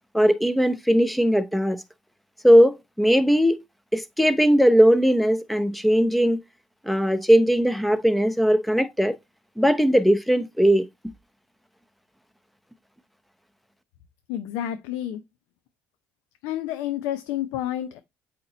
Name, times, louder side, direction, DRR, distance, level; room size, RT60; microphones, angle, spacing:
voice 1, 0.1-1.8 2.4-3.6 3.9-6.4 6.8-9.1 9.6-10.8, equal, ahead, 0.7 m, -19 dB
voice 2, 14.3-15.2 16.4-18.0, left 12 dB, 85° left, 0.6 m, -29 dB
8.3 x 2.9 x 3.9 m
cardioid pair, 100°, 5 cm